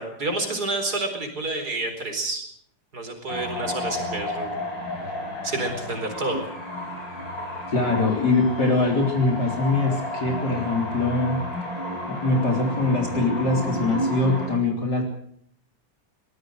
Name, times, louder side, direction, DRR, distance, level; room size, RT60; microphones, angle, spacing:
voice 1, 0.0-2.4 2.9-4.6 5.0-5.1 5.4-6.4, right 2 dB, 55° right, 6 dB, 4.9 m, -29 dB
sound 1, 3.3-14.5, left 1 dB, 80° left, 7.4 m, -32 dB
voice 2, 7.7-11.4 12.1-15.0, left 3 dB, 60° left, 1 dB, 4.3 m, -23 dB
23.0 x 19.5 x 6.4 m, 0.65 s
omnidirectional pair, 2.0 m